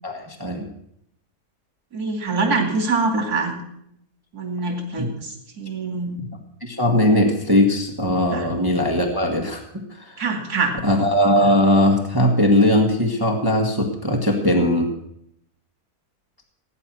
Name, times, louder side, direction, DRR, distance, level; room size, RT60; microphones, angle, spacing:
voice 1, 0.0-0.7 5.0-5.1 6.6-9.6 10.0-10.2 10.8-14.9, left 1 dB, 15° right, 2 dB, 1.4 m, -19 dB
voice 2, 1.9-3.5 4.3-6.2 8.3-8.5 10.2-10.8, right 3 dB, 85° right, 2 dB, 3.3 m, -24 dB
17.0 x 9.7 x 6.1 m, 0.73 s
omnidirectional pair, 1.6 m